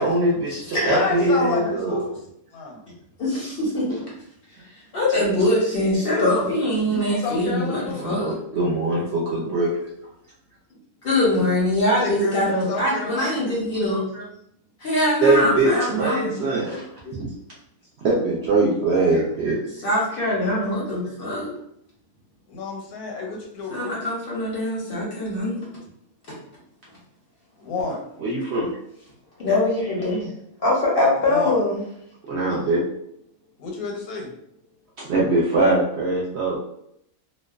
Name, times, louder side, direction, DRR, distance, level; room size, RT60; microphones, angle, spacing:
voice 1, 0.0-2.0 3.9-4.0 8.0-9.9 15.2-16.9 17.2-17.3 18.0-19.6 28.2-28.7 32.3-32.8 35.0-36.6, right 2 dB, 65° right, -5 dB, 0.6 m, -22 dB
voice 2, 0.8-2.2 2.5-2.8 6.8-8.1 12.0-13.4 22.5-24.0 27.6-28.0 31.3-31.5 33.6-34.3, left 4 dB, 80° left, 0 dB, 1.1 m, -30 dB
voice 3, 3.2-4.0 4.9-8.3 11.0-14.3 14.8-16.4 17.0-17.2 19.8-21.5 23.7-25.7 29.4-30.3 30.6-31.8, left 1 dB, 55° left, -5 dB, 0.7 m, -23 dB
2.5 x 2.1 x 2.3 m, 0.74 s
omnidirectional pair, 1.5 m